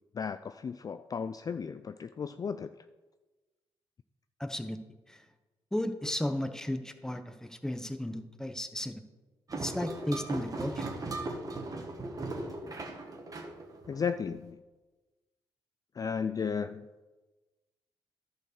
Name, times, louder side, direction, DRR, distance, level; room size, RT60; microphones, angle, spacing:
voice 1, 0.1-2.7 13.9-14.6 15.9-16.9, left 6 dB, 35° left, 11 dB, 0.3 m, -34 dB
voice 2, 4.4-4.8 5.1-5.2 5.7-9.0 9.5-11.0, left 1 dB, 5° left, 8 dB, 0.8 m, -34 dB
sound 1, 9.5-14.4, right 2 dB, 35° right, 1.5 m, -38 dB
10.5 x 4.7 x 6.5 m, 1.2 s
cardioid pair, 70°, 10 cm